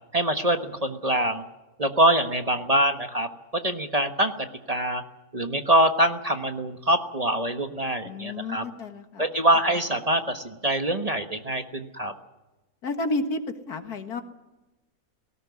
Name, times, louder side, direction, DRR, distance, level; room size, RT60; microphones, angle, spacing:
voice 1, 0.1-1.4 1.8-4.3 4.7-5.0 5.3-8.6 9.2-12.1, right 1 dB, 25° right, 7 dB, 1.3 m, -24 dB
voice 2, 8.0-9.3 12.8-13.4 13.7-14.2, left 2 dB, 90° left, 7 dB, 2.2 m, -31 dB
18.0 x 17.5 x 9.6 m, 1.1 s
omnidirectional pair, 1.6 m